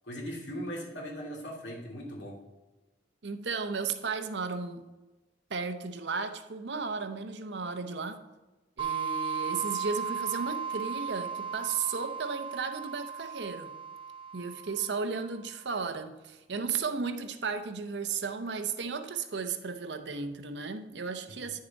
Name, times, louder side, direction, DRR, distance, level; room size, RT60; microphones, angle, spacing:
voice 1, 0.0-2.4 21.3-21.5, equal, 75° left, 2.3 m, -39 dB
voice 2, 3.2-4.8 5.5-8.2 8.8-13.7 14.3-21.6, right 5 dB, 70° right, 0.7 m, -34 dB
sound 1, 8.8-15.3, right 6 dB, 25° right, 0.8 m, -36 dB
9.9 x 6.7 x 4.0 m
head